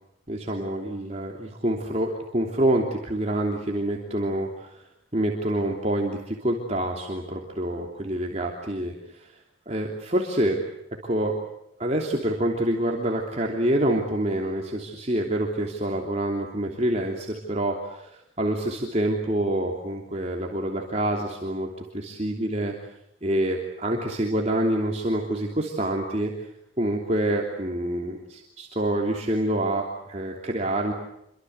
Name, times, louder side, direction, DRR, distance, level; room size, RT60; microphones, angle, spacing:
voice 1, 0.3-4.8 5.1-9.4 9.7-10.6 11.0-11.4 11.8-21.7 21.9-22.7 23.2-26.5 26.8-30.9, right 1 dB, 35° right, 0 dB, 3.1 m, -27 dB
28.0 x 24.5 x 8.2 m, 0.80 s
head